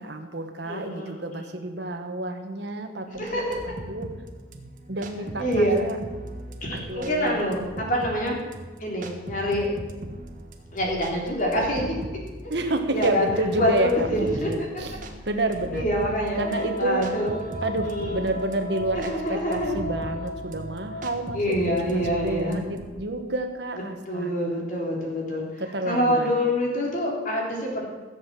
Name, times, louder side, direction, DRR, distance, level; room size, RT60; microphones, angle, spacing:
voice 1, 0.0-3.4 3.7-4.1 4.9-6.0 6.7-7.4 7.7-7.8 12.5-14.9 15.2-15.8 16.4-17.0 17.6-24.3 25.7-26.3, right 2 dB, 65° right, 6 dB, 1.5 m, -29 dB
voice 2, 0.6-1.6 3.2-3.4 5.4-5.8 6.6-8.4 8.8-9.7 10.7-11.8 12.9-13.3 13.5-14.5 15.7-17.3 17.8-18.2 18.9-19.8 21.3-22.6 24.1-27.9, equal, 45° left, -2 dB, 3.7 m, -26 dB
sound 1, 3.1-22.9, right 1 dB, 45° right, 1.5 m, -39 dB
Wind instrument woodwind instrument, 16.3-21.1, equal, 65° left, 4.5 m, -36 dB
15.5 x 7.6 x 7.6 m, 1.3 s
head